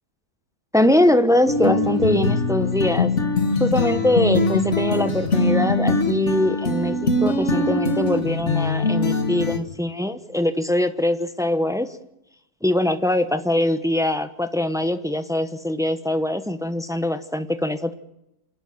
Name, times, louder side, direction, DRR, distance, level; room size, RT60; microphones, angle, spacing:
voice 1, 0.7-3.1 3.6-11.9 12.6-17.9, left 1 dB, 5° right, 9 dB, 0.7 m, -22 dB
sound 1, 1.5-9.6, left 2 dB, 50° left, 2.0 m, -22 dB
28.0 x 11.5 x 9.7 m, 0.87 s
omnidirectional pair, 1.7 m